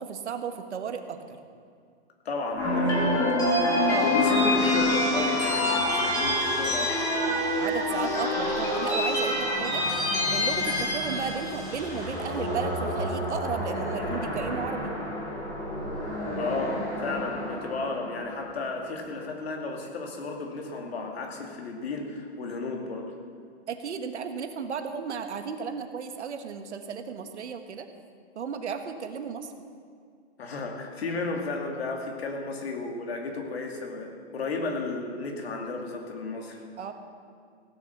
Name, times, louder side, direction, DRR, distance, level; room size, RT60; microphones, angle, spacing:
voice 1, 0.0-1.4 3.9-4.5 7.6-9.8 10.3-14.9 23.7-27.9 28.3-29.5 36.8-36.9, right 6 dB, 85° right, 7 dB, 1.4 m, -34 dB
voice 2, 2.2-3.3 3.8-7.0 16.4-23.1 30.4-36.6, left 3 dB, 65° left, 2 dB, 2.4 m, -33 dB
sound 1, 2.6-18.8, left 1 dB, 10° left, 2.0 m, -27 dB
16.5 x 7.2 x 7.1 m, 2.2 s
hypercardioid pair, 175°, 33 cm